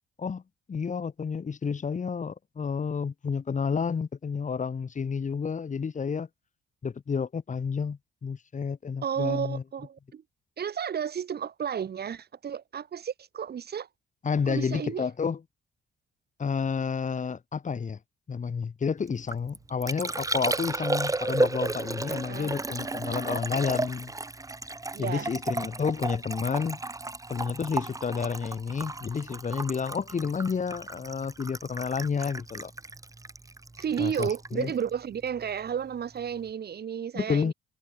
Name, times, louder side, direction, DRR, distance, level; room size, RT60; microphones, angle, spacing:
voice 1, 0.7-6.3 6.8-9.6 14.2-15.4 16.4-18.0 18.3-24.1 25.0-26.8 27.3-32.7 34.0-34.7 37.1-37.5, left 6 dB, 40° left, 3.2 m, -30 dB
voice 2, 9.0-10.2 10.6-13.9 14.5-15.0 22.1-22.5 24.9-25.3 33.8-37.5, right 8 dB, 55° right, 4.0 m, -32 dB
Liquid, 19.1-35.7 36.0-36.5, right 2 dB, 15° right, 2.1 m, -34 dB
cardioid pair, 90°, 20 cm